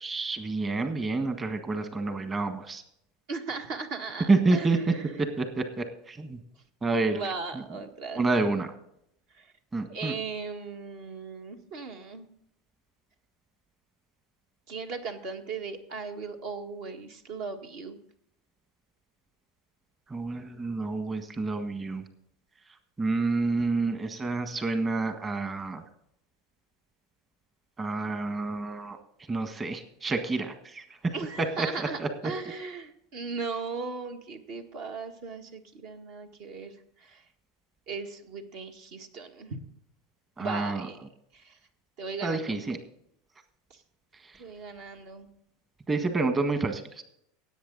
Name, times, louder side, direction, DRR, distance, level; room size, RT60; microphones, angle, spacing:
voice 1, 0.0-2.8 4.3-4.8 5.4-6.4 6.8-7.2 8.2-8.7 9.7-10.1 20.1-22.0 23.0-25.8 27.8-29.0 29.3-30.8 32.0-32.1 40.4-40.8 42.2-42.8 45.9-47.0, right 3 dB, 25° right, 7 dB, 1.5 m, -28 dB
voice 2, 3.3-5.3 7.1-8.3 9.3-9.5 9.9-12.3 14.7-18.0 31.1-37.2 37.9-39.6 40.4-41.6 42.0-42.6 43.7-43.8 44.4-45.3, right 4 dB, 60° right, 5 dB, 1.7 m, -38 dB
17.5 x 8.2 x 4.0 m, 0.73 s
hypercardioid pair, 90°, 0 cm